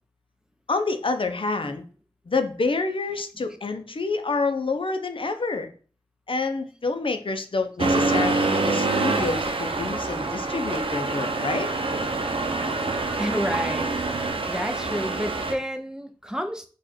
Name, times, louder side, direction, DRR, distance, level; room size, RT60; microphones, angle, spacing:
voice 1, 0.7-1.9 2.3-5.7 6.3-11.7, left 3 dB, 70° left, 7 dB, 0.6 m, -27 dB
Accelerating revving vroom, 7.8-15.5, right 3 dB, 75° right, 0.6 m, -26 dB
voice 2, 13.2-13.9 14.5-16.7, equal, 5° right, 7 dB, 0.7 m, -30 dB
4.8 x 2.4 x 4.3 m, 0.40 s
wide cardioid pair, 40°, 9 cm